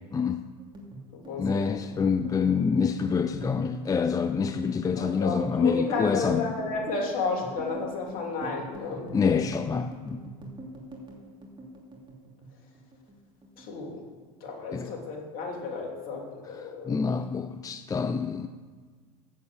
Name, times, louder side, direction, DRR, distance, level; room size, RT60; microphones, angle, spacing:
voice 1, 0.1-0.4 1.4-6.5 9.1-10.3 14.7-14.9 16.9-18.5, left 5 dB, 20° left, 9 dB, 0.4 m, -26 dB
sound 1, 0.6-13.2 13.4-14.5 14.8-15.1 15.4-16.1, right 1 dB, 25° right, 2.7 m, -43 dB
voice 2, 1.1-1.7 5.0-9.1 13.6-14.0 14.4-17.1, left 4 dB, 50° left, -2 dB, 3.0 m, -32 dB
7.9 x 7.4 x 7.7 m, 1.5 s
hypercardioid pair, 90°, 19 cm